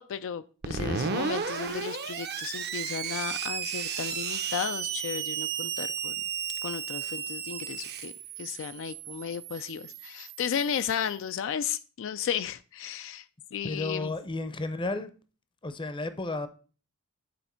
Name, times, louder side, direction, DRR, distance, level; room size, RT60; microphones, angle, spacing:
voice 1, 0.0-6.2 6.6-13.3 13.5-14.1, left 8 dB, 65° left, 0.3 m, -34 dB
Screech, 0.6-11.1, right 7 dB, 50° right, 0.7 m, -34 dB
voice 2, 13.6-15.1 15.6-16.5, left 2 dB, 25° left, 0.6 m, -32 dB
9.4 x 4.3 x 4.3 m
head